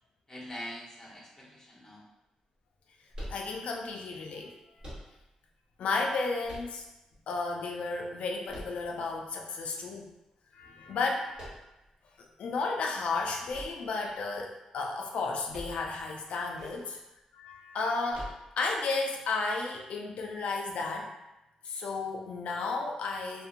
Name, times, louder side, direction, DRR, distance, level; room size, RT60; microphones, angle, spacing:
voice 1, 0.3-2.0 16.6-17.0, equal, 20° left, -4 dB, 0.8 m, -44 dB
sound 1, 3.1-3.9 4.8-5.5 6.4-7.2 8.5-9.3 11.3-11.9 13.5-14.4 15.5-16.1 16.3-16.4 18.1-18.8, equal, 40° right, 1.3 m, -44 dB
voice 2, 3.3-4.5 5.8-6.9 7.3-10.1 10.5-11.5 12.2-16.8 17.3-21.1 21.6-23.5, left 3 dB, 70° left, 1 dB, 0.3 m, -33 dB
2.7 x 2.1 x 2.4 m, 0.95 s
cardioid pair, 110°, 2 cm